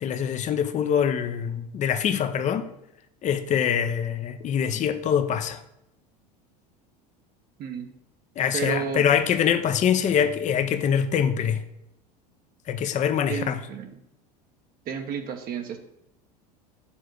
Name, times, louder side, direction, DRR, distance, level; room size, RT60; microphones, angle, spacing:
voice 1, 0.0-2.7 3.2-5.6 8.4-11.6 12.7-13.6, left 8 dB, 35° left, 10 dB, 0.7 m, -24 dB
voice 2, 7.6-7.9 8.5-9.1 13.3-14.0 14.9-15.8, right 7 dB, 45° right, 5 dB, 0.9 m, -31 dB
7.1 x 3.7 x 6.4 m, 0.82 s
hypercardioid pair, 85°, 21 cm